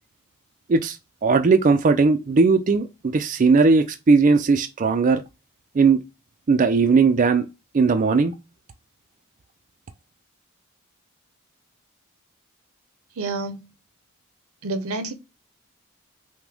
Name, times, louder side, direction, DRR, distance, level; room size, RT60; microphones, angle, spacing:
voice 1, 0.7-5.2 5.7-6.0 6.5-7.5 7.7-8.3, right 4 dB, 35° right, 0.4 m, -18 dB
voice 2, 13.2-13.7 14.6-15.1, right 3 dB, 80° right, 0.7 m, -29 dB
5.9 x 2.1 x 3.4 m
head